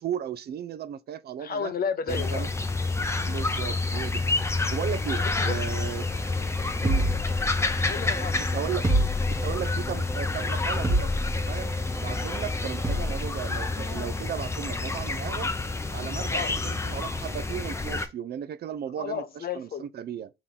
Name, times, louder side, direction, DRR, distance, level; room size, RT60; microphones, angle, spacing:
voice 1, 0.0-1.7 2.1-2.5 3.3-4.2 4.7-6.1 6.8-7.1 8.5-8.9 9.3-11.1 11.5-11.7 12.0-15.5 15.9-19.2 19.6-20.3, right 9 dB, 55° right, 0.4 m, -35 dB
voice 2, 1.4-2.4 5.2-5.6 7.9-8.3 16.3-16.5 19.0-19.8, left 6 dB, 50° left, 0.6 m, -32 dB
sound 1, 2.1-18.1, left 3 dB, 15° left, 0.6 m, -28 dB
sound 2, 6.8-8.0 8.8-9.7 10.8-11.5 12.8-13.3, right 1 dB, 15° right, 1.0 m, -27 dB
3.8 x 3.0 x 3.7 m
cardioid pair, 90°, 20 cm